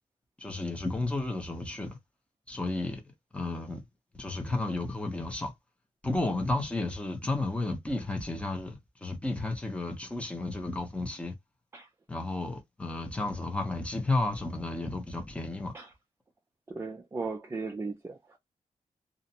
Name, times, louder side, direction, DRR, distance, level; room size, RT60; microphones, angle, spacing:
voice 1, 0.4-2.0 2.5-3.0 3.3-3.8 4.2-5.5 6.0-8.7 9.0-11.3 12.1-15.7, left 2 dB, 10° left, 0.6 m, -32 dB
voice 2, 16.7-18.4, right 4 dB, 20° right, 0.3 m, -37 dB
2.5 x 2.1 x 2.7 m
wide cardioid pair, 160°, 13 cm